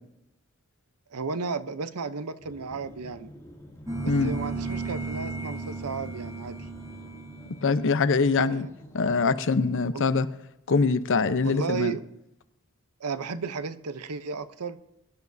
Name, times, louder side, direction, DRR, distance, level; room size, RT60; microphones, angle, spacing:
voice 1, 1.1-3.3 4.2-6.7 8.4-8.7 9.9-10.0 11.4-12.0 13.0-14.8, right 5 dB, 80° right, 12 dB, 0.7 m, -33 dB
sound 1, 2.4-9.3, equal, 15° left, 2.4 m, -48 dB
sound 2, 3.9-7.9, right 3 dB, 15° right, 1.9 m, -34 dB
voice 2, 7.6-8.7 8.9-10.3 10.7-11.9, left 4 dB, 60° left, 12 dB, 0.7 m, -23 dB
22.0 x 10.5 x 2.7 m, 0.84 s
head